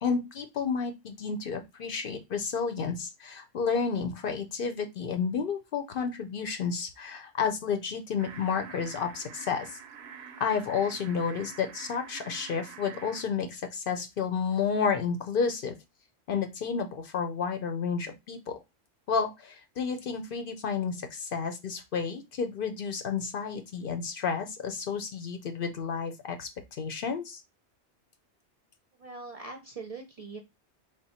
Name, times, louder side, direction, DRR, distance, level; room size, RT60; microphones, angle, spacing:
voice 1, 0.0-9.8 10.4-15.8 16.3-18.6 19.1-26.5 26.8-27.4, left 6 dB, 60° left, 7 dB, 0.7 m, -31 dB
sound 1, 8.2-13.2, right 7 dB, 75° right, 0.8 m, -46 dB
voice 2, 29.0-30.4, right 3 dB, 45° right, 3 dB, 0.5 m, -42 dB
3.6 x 2.2 x 4.1 m, 0.22 s
omnidirectional pair, 1.1 m